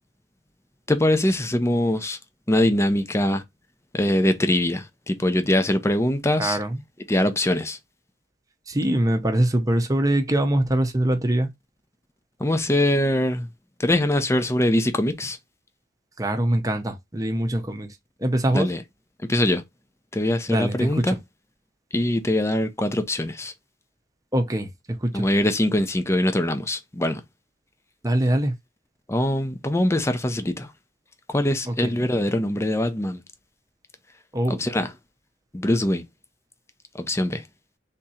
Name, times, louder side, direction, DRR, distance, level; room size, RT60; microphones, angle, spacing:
voice 1, 0.9-2.2 2.5-3.4 3.9-6.6 7.1-7.8 12.4-13.5 13.8-15.4 18.5-18.8 19.3-19.6 20.1-21.2 21.9-23.5 25.1-27.2 29.1-30.7 31.3-33.2 34.6-34.9 35.5-36.0 37.0-37.4, left 1 dB, 15° left, 0.6 m, -22 dB
voice 2, 6.4-6.8 8.7-11.5 16.2-18.7 20.5-21.2 24.3-25.3 28.0-28.5 31.7-31.9 34.3-34.6, right 1 dB, 20° right, 0.8 m, -23 dB
3.6 x 2.8 x 4.2 m
head